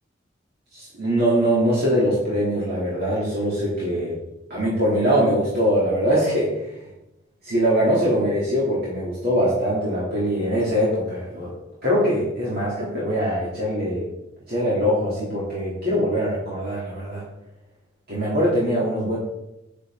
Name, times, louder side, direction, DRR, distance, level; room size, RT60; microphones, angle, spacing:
voice 1, 0.7-4.2 4.5-6.9 7.4-11.5 11.8-14.1 14.5-17.2 18.1-19.2, equal, 55° right, -8 dB, 3.2 m, -22 dB
10.0 x 9.0 x 3.9 m, 0.92 s
head